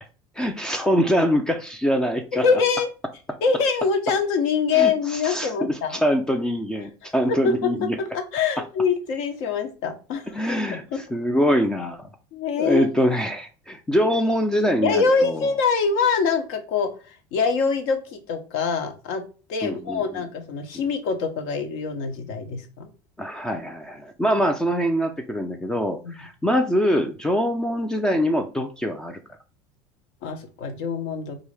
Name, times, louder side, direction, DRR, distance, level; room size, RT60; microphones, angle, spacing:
voice 1, 0.4-2.4 4.7-8.0 10.3-12.1 12.6-15.5 19.6-20.2 23.2-29.2, equal, 5° left, 6 dB, 0.4 m, -24 dB
voice 2, 2.3-2.9 3.4-6.0 7.4-10.4 10.9-11.0 12.3-12.9 14.8-16.9 17.3-22.9 26.0-26.1 30.2-31.4, left 5 dB, 65° left, 6 dB, 1.0 m, -24 dB
4.7 x 2.7 x 3.2 m, 0.35 s
cardioid pair, 155°, 10 cm